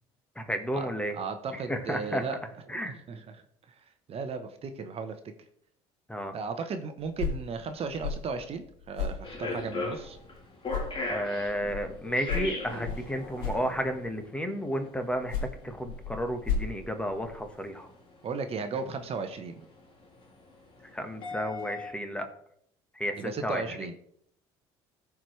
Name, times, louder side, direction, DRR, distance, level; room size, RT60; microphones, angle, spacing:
voice 1, 0.4-1.2 1.5-2.2 2.7-2.9 6.1-6.3 11.1-17.9 20.9-22.3 23.0-23.6, equal, 10° left, 7 dB, 1.3 m, -32 dB
voice 2, 1.1-2.4 2.7-3.4 4.1-5.2 6.3-10.2 18.2-19.7 23.2-23.9, right 5 dB, 45° right, 8 dB, 0.9 m, -35 dB
sound 1, 7.0-10.4 10.7-14.2 15.0-17.7, left 5 dB, 75° left, 2.1 m, -36 dB
sound 2, 9.2-21.9, left 3 dB, 40° left, 2.6 m, -39 dB
14.0 x 4.8 x 3.2 m, 0.68 s
supercardioid pair, 75°, 14 cm